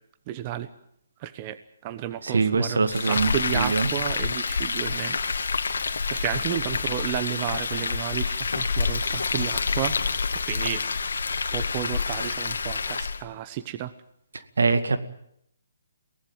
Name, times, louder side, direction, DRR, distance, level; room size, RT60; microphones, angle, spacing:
voice 1, 0.3-0.7 1.2-5.2 5.7-10.8 11.5-13.9, right 12 dB, 30° right, 13 dB, 1.1 m, -32 dB
voice 2, 2.2-3.9 14.6-15.0, right 4 dB, 75° right, 10 dB, 2.1 m, -23 dB
Frying (food), 2.9-13.2, left 5 dB, 70° left, 1.8 m, -28 dB
23.5 x 18.0 x 9.0 m, 0.73 s
hypercardioid pair, 145°, 0 cm